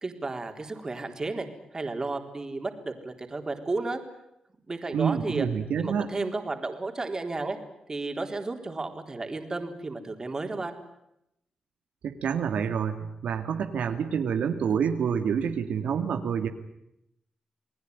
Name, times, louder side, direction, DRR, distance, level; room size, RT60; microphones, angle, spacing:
voice 1, 0.0-1.5 1.7-4.0 4.7-5.5 5.8-7.6 7.9-10.8, right 3 dB, 30° right, 5 dB, 4.0 m, -33 dB
voice 2, 4.9-6.1 12.0-16.5, right 7 dB, 90° right, 5 dB, 2.4 m, -27 dB
29.5 x 20.0 x 9.6 m, 0.82 s
cardioid pair, 105°, 2 cm